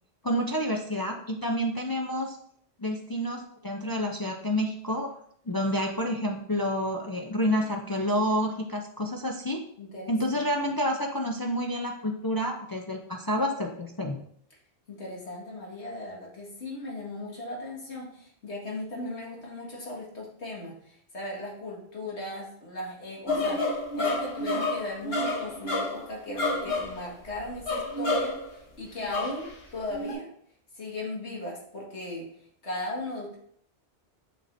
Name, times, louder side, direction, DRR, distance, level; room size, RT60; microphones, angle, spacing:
voice 1, 0.2-2.4 2.8-5.1 5.5-9.6 10.1-14.2, equal, 35° left, 2 dB, 0.3 m, -29 dB
voice 2, 9.8-10.7 14.9-30.3 30.8-32.3 32.6-33.4, left 2 dB, 85° left, -3 dB, 2.0 m, -37 dB
sound 1, 23.3-28.5 29.0-29.5 29.9-30.1, left 2 dB, 65° left, 1.5 m, -29 dB
6.6 x 5.6 x 2.6 m, 0.66 s
omnidirectional pair, 1.1 m